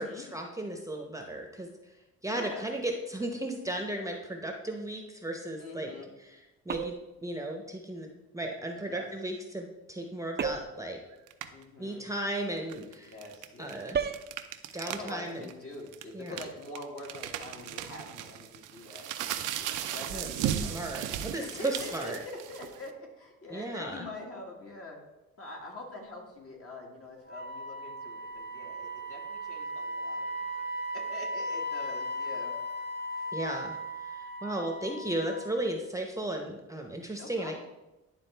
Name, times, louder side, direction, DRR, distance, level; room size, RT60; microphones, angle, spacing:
voice 1, 0.0-1.7 2.2-5.9 6.2-6.4 6.6-11.0 11.8-13.2 13.6-14.0 14.7-15.4 16.1-16.4 20.1-22.2 23.5-24.1 33.3-37.6, right 1 dB, 10° right, 2 dB, 0.8 m, -35 dB
voice 2, 2.3-2.7 5.6-6.1 8.8-9.1 11.5-12.1 13.1-13.8 14.8-20.8 21.4-25.0 25.4-32.5 33.2-33.3 37.1-37.6, left 2 dB, 50° left, 0 dB, 2.0 m, -45 dB
sound 1, 6.7-7.2 10.4-10.9 13.9-14.3, right 6 dB, 35° right, 0.5 m, -32 dB
sound 2, 11.3-11.6 12.6-15.1 15.4-15.5 15.9-22.9, right 10 dB, 85° right, 0.6 m, -36 dB
Wind instrument woodwind instrument, 27.3-35.5, equal, 35° left, 1.5 m, -37 dB
11.0 x 3.8 x 3.4 m, 1.0 s
cardioid pair, 90°, 30 cm